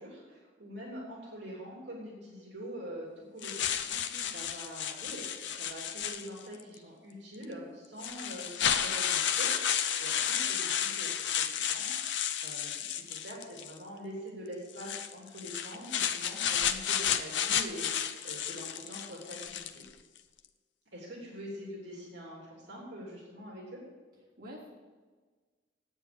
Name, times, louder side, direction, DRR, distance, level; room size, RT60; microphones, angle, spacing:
voice 1, 0.0-19.8 20.9-23.8, equal, 65° right, -3 dB, 3.3 m, -45 dB
sound 1, 3.4-6.6 7.4-7.5 8.0-13.8 14.7-19.9, left 9 dB, 75° left, 0.7 m, -32 dB
voice 2, 3.9-4.3 24.4-24.7, equal, 50° right, -7 dB, 3.4 m, -48 dB
9.8 x 8.7 x 7.1 m, 1.4 s
head